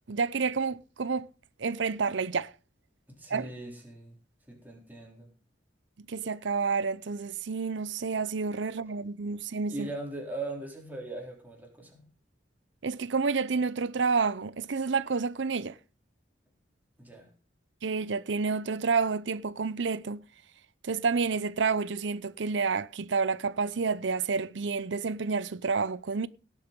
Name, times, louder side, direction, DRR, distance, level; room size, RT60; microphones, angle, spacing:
voice 1, 0.1-1.3 1.6-2.5 3.3-3.5 6.1-9.9 12.8-15.8 17.8-20.2 20.8-26.3, right 5 dB, 75° right, 0.6 m, -29 dB
voice 2, 3.1-4.2 4.5-5.3 9.7-12.1 17.0-17.3, right 2 dB, 10° right, 3.8 m, -40 dB
18.0 x 7.0 x 5.3 m
head